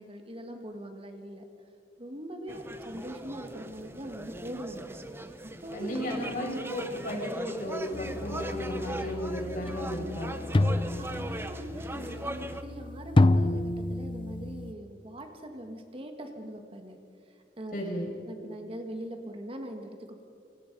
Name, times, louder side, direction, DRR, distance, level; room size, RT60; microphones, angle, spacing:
voice 1, 0.0-1.4 2.0-4.9 5.4-6.2 11.0-17.0 17.3-17.8 18.3-20.2, right 1 dB, 35° right, 4 dB, 1.9 m, -41 dB
sound 1, 2.5-12.6, right 1 dB, 15° right, 1.1 m, -40 dB
voice 2, 5.7-10.4 17.7-18.1, left 1 dB, 50° left, -1 dB, 6.3 m, -34 dB
sound 2, 7.9-14.7, left 2 dB, 30° left, 0.6 m, -29 dB
27.5 x 25.0 x 5.5 m, 2.5 s
head